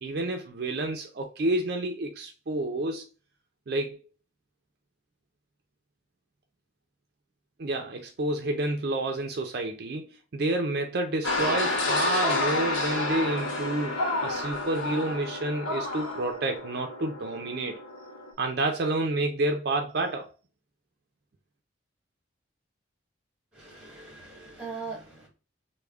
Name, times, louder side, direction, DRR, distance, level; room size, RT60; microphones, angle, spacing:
voice 1, 0.0-3.0 3.7-4.0 7.6-17.8 18.4-20.3, right 2 dB, 50° right, 0.4 m, -29 dB
sound 1, 11.2-18.3, left 2 dB, 80° left, 1.0 m, -30 dB
voice 2, 23.5-25.3, right 4 dB, 5° right, 1.1 m, -40 dB
3.3 x 2.1 x 3.4 m
head